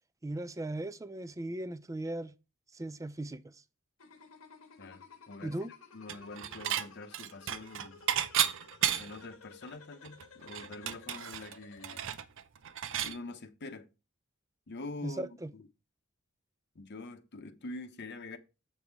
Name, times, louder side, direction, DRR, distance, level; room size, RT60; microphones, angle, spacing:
voice 1, 0.2-2.3 2.7-3.6 5.4-5.7 15.0-15.5, right 1 dB, 15° right, 0.4 m, -38 dB
sound 1, 4.0-12.0, left 5 dB, 90° left, 1.5 m, -55 dB
voice 2, 4.8-5.5 5.9-8.1 9.0-12.1 13.0-13.9 14.7-15.3 15.5-15.6 16.7-18.4, left 2 dB, 55° left, 0.9 m, -45 dB
Dishes pots and pans / Chink clink, 6.1-6.9 7.1-9.3 9.7-9.8 10.0-13.2, right 10 dB, 65° right, 0.6 m, -33 dB
7.7 x 5.5 x 4.6 m
head